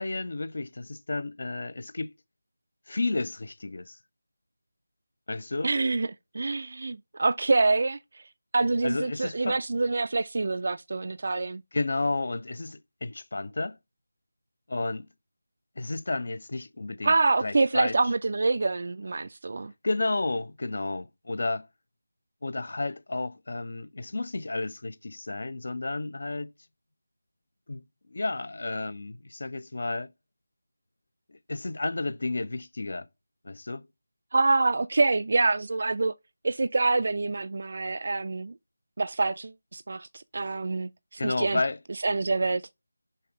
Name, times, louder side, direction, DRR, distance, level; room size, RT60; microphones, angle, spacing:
voice 1, 0.0-2.1 2.9-4.0 5.3-5.7 8.8-9.6 11.7-13.8 14.7-15.1 15.8-17.1 17.4-18.0 19.8-21.7 22.4-26.5 27.7-27.8 28.1-30.1 31.3-33.1 33.4-33.8 41.2-41.8, left 2 dB, 55° left, 0.6 m, -31 dB
voice 2, 5.6-6.1 6.3-8.2 8.5-11.6 17.0-19.7 34.3-36.1 36.4-38.5 39.0-41.6 42.0-42.6, right 3 dB, 50° right, 0.3 m, -26 dB
5.6 x 3.4 x 4.9 m
figure-of-eight pair, 165°, 0 cm